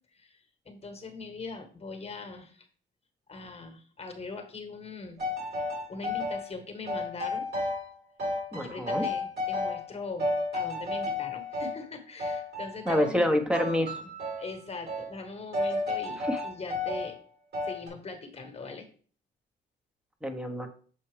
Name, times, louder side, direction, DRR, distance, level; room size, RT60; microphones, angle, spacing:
voice 1, 0.6-2.7 3.3-5.2 5.6-7.5 8.5-13.2 14.4-17.2 17.6-18.9, left 3 dB, 30° left, 6 dB, 1.3 m, -41 dB
sound 1, 5.2-6.4 6.9-7.9 8.2-9.9 10.2-11.8 12.2-13.3 13.5-14.5 14.9-15.1 15.5-17.1 17.5-17.9, left 2 dB, 55° right, 3.1 m, -32 dB
voice 2, 8.5-9.0 12.9-14.0 16.3-16.4 20.2-20.7, left 1 dB, 5° right, 6 dB, 1.0 m, -27 dB
7.1 x 4.2 x 3.3 m, 0.43 s
cardioid pair, 90°, 20 cm